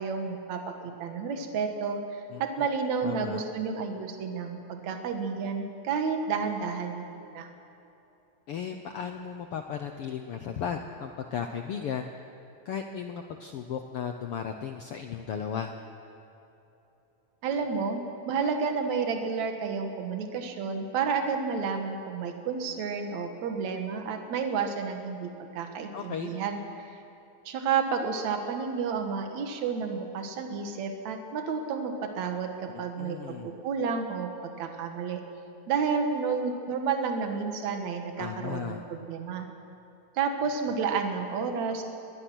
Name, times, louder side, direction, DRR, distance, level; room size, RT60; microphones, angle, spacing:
voice 1, 0.0-7.5 17.4-27.0 27.5-35.2 35.7-39.5 40.2-41.8, right 5 dB, 65° right, 5 dB, 2.8 m, -31 dB
voice 2, 2.3-2.7 3.0-3.4 8.5-12.1 12.6-15.7 25.9-26.3 32.7-33.5 38.2-38.8, left 7 dB, 75° left, 5 dB, 1.3 m, -35 dB
22.0 x 20.5 x 6.3 m, 2.9 s
omnidirectional pair, 3.7 m